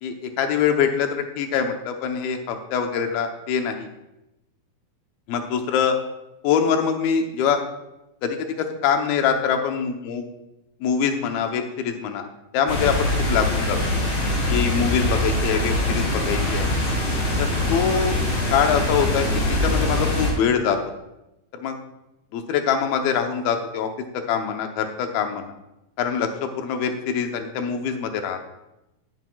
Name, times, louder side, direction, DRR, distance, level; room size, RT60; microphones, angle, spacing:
voice 1, 0.0-1.1 1.4-3.9 5.3-6.0 6.4-7.6 8.2-10.2 10.8-12.3 12.5-13.8 14.5-16.7 17.4-18.2 18.5-19.3 19.6-20.8 21.5-21.8 22.3-23.9 24.3-25.5 26.0-28.4, left 7 dB, 90° left, 5 dB, 2.8 m, -24 dB
sound 1, 12.7-20.3, left 1 dB, 55° left, 5.7 m, -23 dB
18.0 x 8.1 x 2.3 m, 0.92 s
omnidirectional pair, 4.2 m